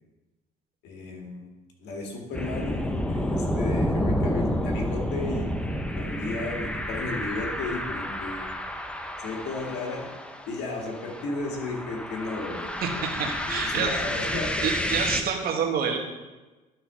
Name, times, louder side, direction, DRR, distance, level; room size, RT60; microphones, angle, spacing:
voice 1, 0.8-1.4 1.8-5.7 5.9-8.5 9.2-10.1 10.5-13.0 13.5-14.9, left 2 dB, 80° left, 1 dB, 2.0 m, -34 dB
sound 1, 2.3-15.2, equal, 5° left, 0.7 m, -30 dB
voice 2, 12.8-13.9 14.6-16.0, right 6 dB, 65° right, 1 dB, 1.8 m, -27 dB
12.0 x 4.4 x 5.6 m, 1.2 s
cardioid pair, 110°, 17 cm